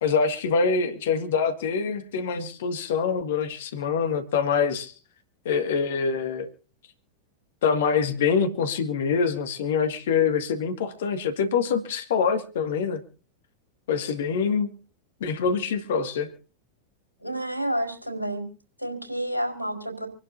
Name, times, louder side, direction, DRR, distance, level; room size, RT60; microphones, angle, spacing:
voice 1, 0.0-4.9 5.5-6.5 7.6-13.0 13.9-14.7 15.2-16.3, left 6 dB, 60° left, 8 dB, 2.0 m, -25 dB
voice 2, 17.2-18.4 18.8-20.1, right 1 dB, 85° right, 4 dB, 4.6 m, -29 dB
27.0 x 11.5 x 2.7 m, 0.36 s
figure-of-eight pair, 90°, 0 cm